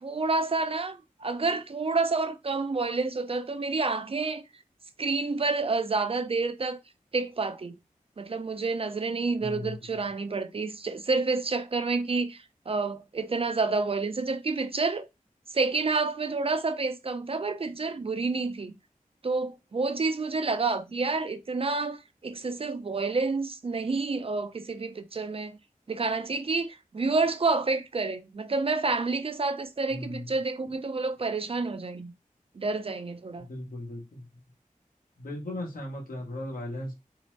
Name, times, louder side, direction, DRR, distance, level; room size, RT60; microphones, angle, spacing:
voice 1, 0.0-4.4 5.0-6.8 7.1-7.8 8.2-15.1 15.5-18.7 19.2-25.6 25.9-32.1 32.6-33.5, right 3 dB, 45° right, 0.3 m, -29 dB
voice 2, 9.4-10.0 29.9-30.3 33.4-34.3 35.2-36.9, left 1 dB, 85° left, 0.9 m, -37 dB
2.8 x 2.0 x 3.0 m
wide cardioid pair, 55°, 14 cm